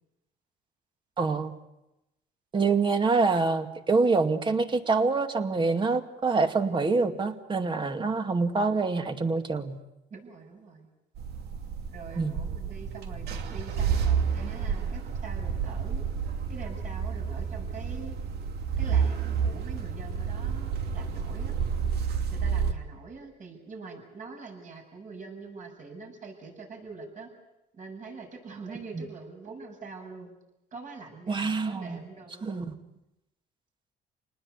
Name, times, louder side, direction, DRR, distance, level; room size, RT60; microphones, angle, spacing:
voice 1, 1.2-1.5 2.5-9.8 12.2-12.4 28.7-29.0 31.3-32.0 32.4-32.7, right 4 dB, 30° right, 7 dB, 2.3 m, -26 dB
voice 2, 7.8-8.1 10.1-10.9 11.9-16.0 16.5-18.2 18.8-21.5 22.3-27.3 27.8-30.3 30.7-32.5, right 4 dB, 50° right, 2 dB, 7.9 m, -44 dB
sound 1, 11.2-22.7, right 7 dB, 70° right, 2.7 m, -30 dB
28.5 x 19.5 x 8.4 m, 0.92 s
cardioid pair, 110°, 17 cm